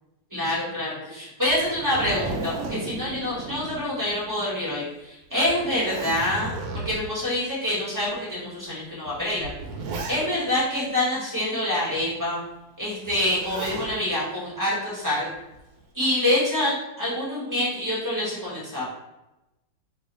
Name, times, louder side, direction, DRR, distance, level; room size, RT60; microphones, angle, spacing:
voice 1, 0.3-9.5 10.1-12.4 12.8-15.3 15.9-18.8, left 1 dB, 15° right, -7 dB, 0.9 m, -26 dB
Zipper (clothing), 1.4-4.4 4.7-4.8 5.4-7.2 8.0-8.1 9.1-10.6 13.1-14.0 15.3-15.8, right 3 dB, 80° right, 1.3 m, -34 dB
3.1 x 3.0 x 3.9 m, 0.96 s
omnidirectional pair, 2.1 m